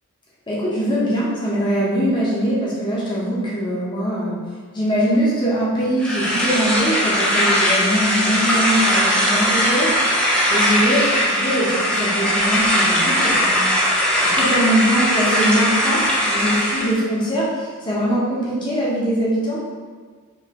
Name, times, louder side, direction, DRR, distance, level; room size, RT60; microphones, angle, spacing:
voice 1, 0.5-4.4 4.7-9.9 10.5-16.0 16.2-19.6, equal, 20° left, -7 dB, 1.1 m, -22 dB
sound 1, 6.0-16.9, equal, 5° left, 0.6 m, -19 dB
4.7 x 3.3 x 3.1 m, 1.5 s
head